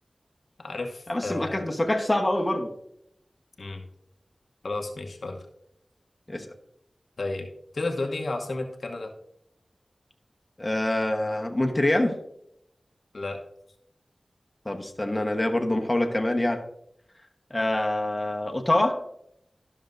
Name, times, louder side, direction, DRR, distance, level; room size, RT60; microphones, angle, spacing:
voice 1, 0.6-1.6 3.6-3.8 4.6-5.5 7.2-7.5 7.7-9.1 13.1-13.4, left 2 dB, 75° left, 4 dB, 0.9 m, -32 dB
voice 2, 1.1-2.7 6.3-6.5 10.6-12.2 14.6-16.6 17.5-19.0, left 1 dB, 25° left, 3 dB, 1.1 m, -25 dB
12.5 x 6.4 x 2.6 m, 0.75 s
wide cardioid pair, 50°, 0 cm